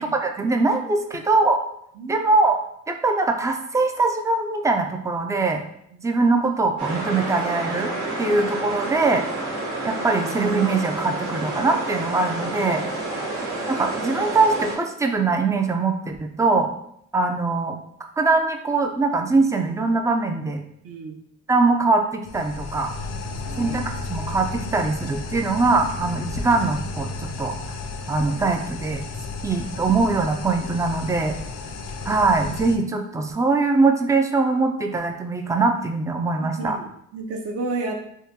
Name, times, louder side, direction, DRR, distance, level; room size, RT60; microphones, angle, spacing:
voice 1, 0.0-1.6 2.1-2.6 2.9-5.6 6.0-7.9 8.2-9.2 9.8-12.8 13.7-16.7 17.1-17.8 18.2-20.6 21.5-22.9 23.6-27.1 27.4-27.5 28.1-29.0 29.4-31.4 32.1-36.8, right 3 dB, 10° right, 4 dB, 0.3 m, -22 dB
sound 1, 6.8-14.8, right 2 dB, 80° right, 1.2 m, -29 dB
voice 2, 20.8-21.2 23.5-23.8 36.4-37.9, right 3 dB, 50° right, 3 dB, 0.6 m, -32 dB
sound 2, 22.2-32.8, left 3 dB, 60° left, 0.5 m, -33 dB
3.6 x 2.2 x 2.8 m, 0.72 s
cardioid pair, 90°, 30 cm